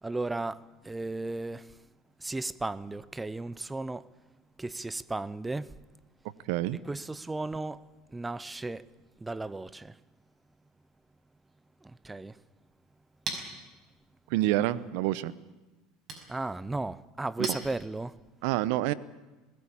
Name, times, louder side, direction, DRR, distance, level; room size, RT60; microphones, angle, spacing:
voice 1, 0.0-1.8 2.2-4.1 4.6-5.8 6.8-8.9 9.2-10.0 11.8-12.4 16.3-18.2, right 2 dB, 10° right, 0.7 m, -35 dB
voice 2, 6.5-6.8 14.3-15.3 17.4-17.6 18.4-18.9, right 15 dB, 75° right, 0.8 m, -27 dB
Chink clink, 12.6-18.3, right 3 dB, 45° right, 5.4 m, -44 dB
20.5 x 17.0 x 8.7 m
supercardioid pair, 95°, 0 cm